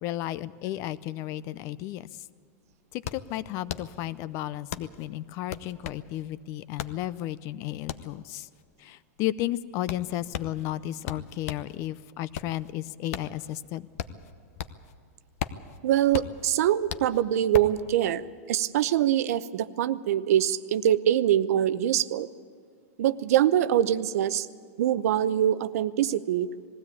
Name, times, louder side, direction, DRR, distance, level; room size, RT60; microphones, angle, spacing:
voice 1, 0.0-2.1 2.9-8.5 8.8-13.9, left 14 dB, 35° left, 18 dB, 0.5 m, -33 dB
sound 1, 2.1-2.2 2.5-11.8 12.1-15.0 15.2-17.8, left 10 dB, 65° left, 0.9 m, -37 dB
voice 2, 15.8-18.2 18.5-22.3 23.0-24.5 24.8-26.5, right 11 dB, 70° right, 15 dB, 0.7 m, -24 dB
20.5 x 16.0 x 8.5 m, 2.1 s
supercardioid pair, 150°, 8 cm